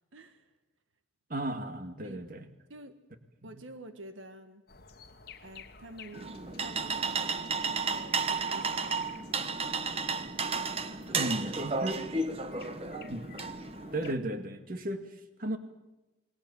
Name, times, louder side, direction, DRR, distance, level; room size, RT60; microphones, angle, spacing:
voice 1, 0.1-0.5 2.0-2.2 2.7-3.0 3.4-4.6 5.4-9.0 11.2-11.3 11.7-12.0 12.3-13.3, right 2 dB, 85° right, 9 dB, 1.6 m, -49 dB
voice 2, 1.3-2.5 11.1-12.0 13.1-13.4 13.9-15.6, right 1 dB, 45° right, 7 dB, 2.1 m, -35 dB
sound 1, 4.7-14.2, left 4 dB, 50° left, 1.4 m, -53 dB
sound 2, 6.1-14.1, right 4 dB, 30° right, 1.2 m, -33 dB
28.5 x 20.5 x 7.1 m, 1.0 s
head